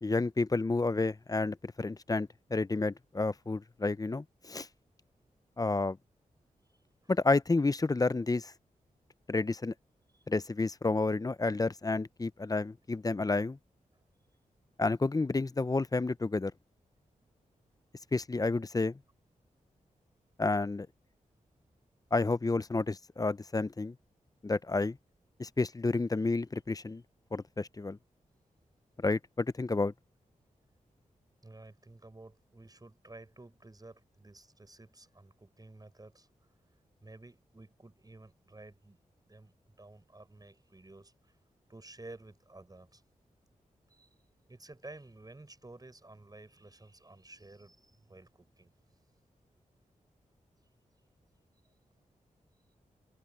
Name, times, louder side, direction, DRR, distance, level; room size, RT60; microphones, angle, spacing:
voice 1, 0.0-4.7 5.6-6.0 7.1-8.5 9.3-9.7 10.3-13.6 14.8-16.5 18.1-19.0 20.4-20.9 22.1-23.9 24.4-25.0 25.4-27.0 27.3-28.0 29.0-29.9, left 3 dB, 25° left, 0.7 m, -30 dB
voice 2, 6.7-7.1 10.1-10.3 13.9-14.1 31.4-36.3 37.0-39.0 39.3-41.4 41.7-43.0 43.9-44.1 44.5-48.7 51.6-51.7, right 2 dB, 25° right, 7.1 m, -53 dB
cardioid pair, 55°, 14 cm